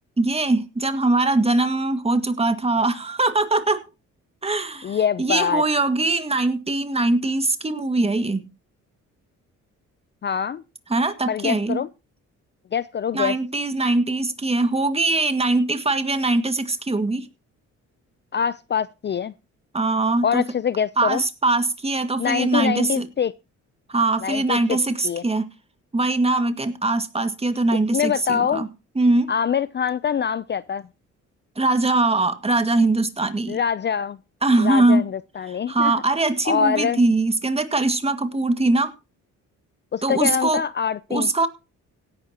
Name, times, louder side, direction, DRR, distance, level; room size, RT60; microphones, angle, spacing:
voice 1, 0.2-3.8 4.4-8.4 10.9-11.8 13.1-17.3 19.7-20.4 21.0-23.1 23.9-25.5 25.9-28.7 29.0-29.3 31.6-33.6 34.4-35.0 35.5-38.9 40.0-40.6 41.1-41.5, right 2 dB, 20° right, 2.0 m, -21 dB
voice 2, 4.8-5.6 10.2-10.6 11.3-11.9 12.7-13.3 18.3-19.3 20.2-21.2 22.2-23.3 24.2-24.8 25.0-25.2 27.9-28.7 29.3-30.9 33.5-34.2 34.6-35.9 36.4-37.0 39.9-41.3, left 7 dB, 35° left, 0.6 m, -24 dB
17.0 x 11.0 x 2.9 m
cardioid pair, 90°, 30 cm